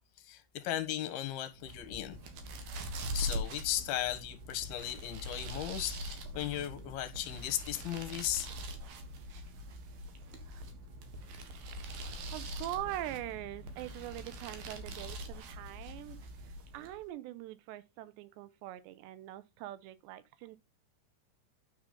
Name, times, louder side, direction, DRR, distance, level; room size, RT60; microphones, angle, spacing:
voice 1, 0.2-2.2 3.1-8.5, left 12 dB, 70° left, 3.0 m, -36 dB
sound 1, 1.5-17.0, equal, 65° right, 3.1 m, -43 dB
voice 2, 12.3-16.2 16.7-20.6, right 14 dB, 85° right, 3.1 m, -42 dB
9.5 x 7.0 x 3.8 m
omnidirectional pair, 4.9 m